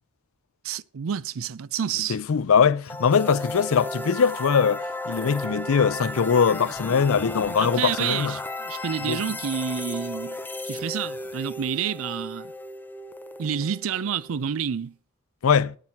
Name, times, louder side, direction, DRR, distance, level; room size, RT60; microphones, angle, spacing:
voice 1, 0.6-2.2 7.6-10.4 10.7-12.5 13.4-14.9, right 8 dB, 75° right, 0.4 m, -29 dB
voice 2, 2.1-8.3 9.0-9.2 15.4-15.8, left 6 dB, 80° left, 0.5 m, -22 dB
sound 1, 2.9-14.7, left 1 dB, 10° left, 0.5 m, -35 dB
12.0 x 6.1 x 5.7 m
head